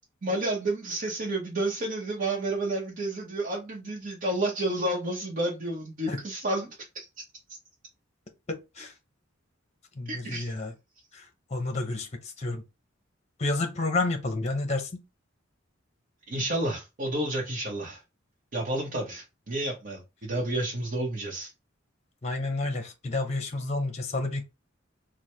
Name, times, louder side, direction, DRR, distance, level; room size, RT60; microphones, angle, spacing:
voice 1, 0.2-6.7 6.9-7.0 10.1-10.5 16.3-18.0 18.5-21.5, right 1 dB, 45° right, 0.9 m, -30 dB
voice 2, 8.5-8.9 9.9-10.7 11.1-12.6 13.4-15.0 22.2-24.4, left 2 dB, 35° left, 0.8 m, -30 dB
4.6 x 2.1 x 3.3 m
head